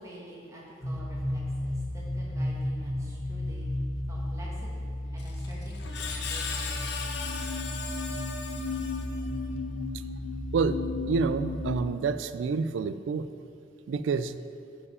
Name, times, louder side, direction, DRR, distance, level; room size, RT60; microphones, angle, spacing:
voice 1, 0.0-3.7 4.1-7.7, right 1 dB, 15° right, -4 dB, 1.4 m, -48 dB
sound 1, 0.8-11.7, left 1 dB, 45° left, 1.9 m, -33 dB
Screech, 5.2-9.5, left 4 dB, 60° left, 0.7 m, -37 dB
voice 2, 11.1-13.3 13.9-14.4, right 4 dB, 75° right, 12 dB, 0.3 m, -28 dB
10.0 x 4.9 x 4.9 m, 2.4 s
head